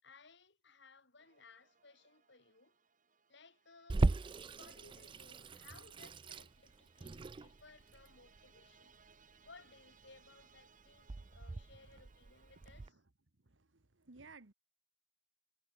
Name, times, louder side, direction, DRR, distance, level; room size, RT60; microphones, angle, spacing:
voice 1, 0.0-2.8 3.3-4.0 4.4-8.9 9.4-12.9, left 4 dB, 65° left, 6.8 m, -61 dB
sound 1, 1.2-12.9, right 5 dB, 45° right, 5.3 m, -69 dB
Water tap faucet / Sink (filling or washing), 3.9-12.9, right 3 dB, 25° right, 0.4 m, -39 dB
voice 2, 12.5-13.0 13.4-14.5, right 3 dB, 70° right, 1.5 m, -59 dB
head